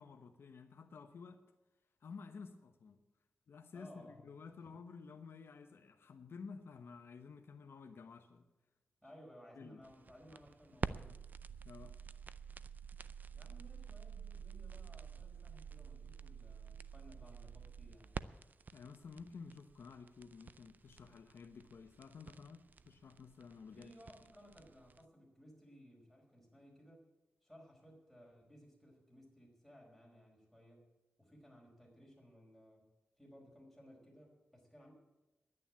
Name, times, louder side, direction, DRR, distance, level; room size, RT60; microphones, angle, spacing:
voice 1, 0.0-1.4 2.0-3.0 3.5-8.5 9.6-9.8 11.6-12.0 18.7-23.9, left 5 dB, 75° left, 6 dB, 1.0 m, -52 dB
voice 2, 3.7-4.3 5.0-5.1 9.0-11.2 13.3-18.2 23.7-27.1 27.4-30.9 31.2-32.9 33.2-34.9, equal, ahead, -1 dB, 5.1 m, -59 dB
sound 1, 9.8-25.0, right 5 dB, 45° right, 0.5 m, -48 dB
11.0 x 9.9 x 8.5 m, 1.0 s
wide cardioid pair, 110°, 4 cm